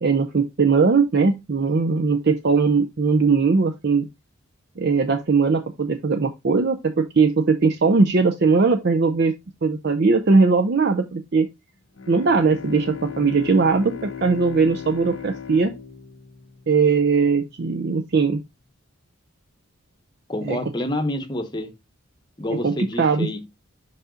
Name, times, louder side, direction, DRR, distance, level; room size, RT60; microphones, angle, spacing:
voice 1, 0.0-4.1 4.8-9.3 9.6-11.5 12.1-15.7 16.7-18.4 20.5-20.6 22.6-22.7 23.0-23.3, right 4 dB, 50° right, 0.5 m, -19 dB
Bowed string instrument, 12.0-17.1, left 7 dB, 60° left, 0.6 m, -37 dB
voice 2, 20.3-21.7 22.4-23.4, left 1 dB, 20° left, 0.9 m, -28 dB
5.6 x 5.3 x 3.7 m
head